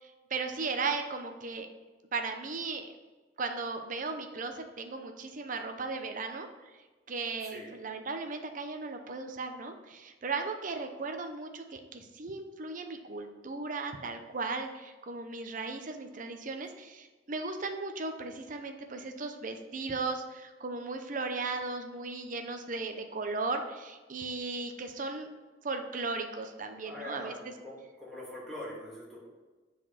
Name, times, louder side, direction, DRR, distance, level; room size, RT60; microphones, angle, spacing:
voice 1, 0.0-1.7 2.1-2.9 3.4-6.5 7.1-25.3 25.6-27.5, right 3 dB, 45° right, 5 dB, 0.7 m, -36 dB
voice 2, 26.8-27.3 27.6-29.3, left 1 dB, ahead, -8 dB, 2.4 m, -43 dB
7.4 x 4.2 x 5.7 m, 1.3 s
head